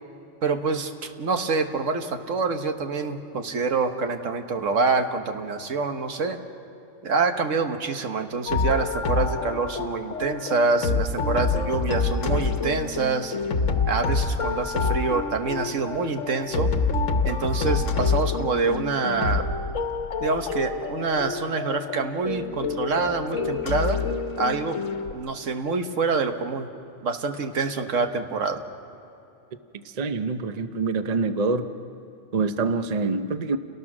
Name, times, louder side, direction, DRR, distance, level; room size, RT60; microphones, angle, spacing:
voice 1, 0.4-6.4 7.0-13.4 13.9-16.7 17.2-19.5 20.2-24.1 24.4-24.8 25.1-26.7 27.0-28.6, right 4 dB, 80° right, 1.5 m, -26 dB
sound 1, 8.5-25.1, left 4 dB, 85° left, 1.4 m, -27 dB
voice 2, 29.7-31.6 32.3-33.6, right 4 dB, 35° right, 0.8 m, -26 dB
29.5 x 19.0 x 6.2 m
omnidirectional pair, 1.3 m